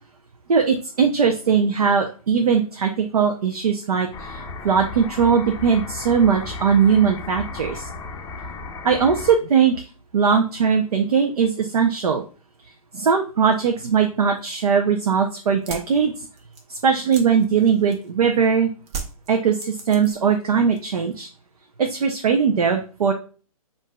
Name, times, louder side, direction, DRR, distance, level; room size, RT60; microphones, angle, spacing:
voice 1, 0.5-7.9 8.8-9.8 10.1-12.2 12.9-16.3 16.7-18.7 19.3-21.3 21.8-23.1, right 6 dB, 80° right, 3 dB, 0.7 m, -20 dB
sound 1, 4.1-9.4, left 3 dB, 15° left, 0.6 m, -35 dB
sound 2, 15.5-18.2 18.9-20.4 20.7-21.3, right 5 dB, 45° right, 1.0 m, -36 dB
7.2 x 2.6 x 2.3 m, 0.36 s
hypercardioid pair, 140°, 19 cm